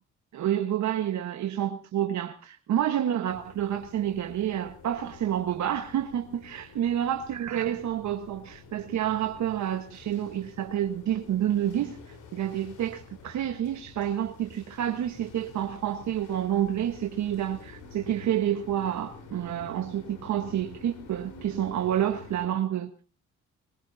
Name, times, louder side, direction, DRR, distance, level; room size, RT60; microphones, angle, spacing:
voice 1, 0.3-22.9, right 11 dB, 70° right, 1.4 m, -29 dB
sound 1, 3.3-22.5, left 4 dB, 80° left, 4.6 m, -49 dB
22.0 x 22.0 x 2.8 m
cardioid pair, 90°, 30 cm